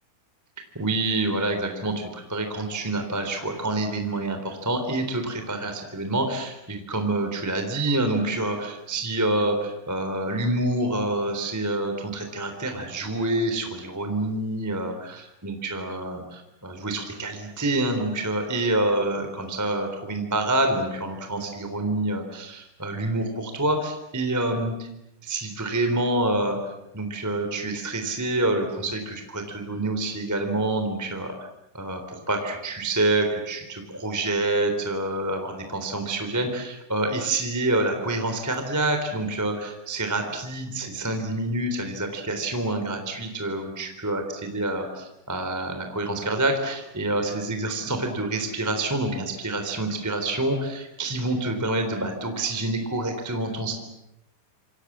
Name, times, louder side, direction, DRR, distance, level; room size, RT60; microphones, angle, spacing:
voice 1, 0.7-24.9 25.2-26.6 26.9-31.3 31.8-53.7, right 2 dB, 5° right, 5 dB, 2.6 m, -27 dB
28.0 x 26.5 x 7.5 m, 0.85 s
omnidirectional pair, 5.6 m